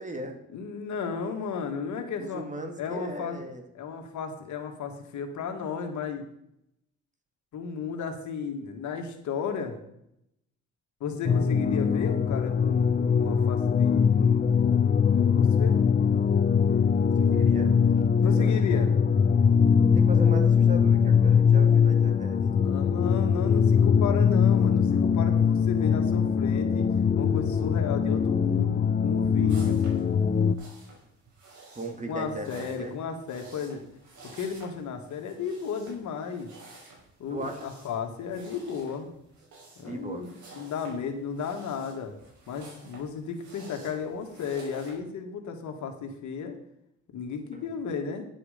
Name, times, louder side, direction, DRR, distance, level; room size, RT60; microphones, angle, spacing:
voice 1, 0.0-0.4 2.2-3.7 17.2-17.7 18.2-18.5 19.9-22.4 31.7-32.9 37.3-37.7 39.9-40.3 47.5-47.7, right 2 dB, 25° right, 5 dB, 2.2 m, -37 dB
voice 2, 0.5-2.4 2.8-3.4 3.7-6.2 7.5-9.7 11.0-14.4 15.1-15.8 18.2-18.9 22.6-26.9 27.2-29.8 32.1-33.9 34.3-36.5 37.2-39.1 39.8-42.1 42.5-46.5 47.1-48.2, left 6 dB, 75° left, 4 dB, 1.9 m, -34 dB
sound 1, 11.3-30.6, left 6 dB, 30° left, 0.6 m, -22 dB
sound 2, 29.5-44.9, right 2 dB, 70° right, 4.7 m, -51 dB
10.5 x 7.7 x 5.1 m, 0.77 s
cardioid pair, 90°, 30 cm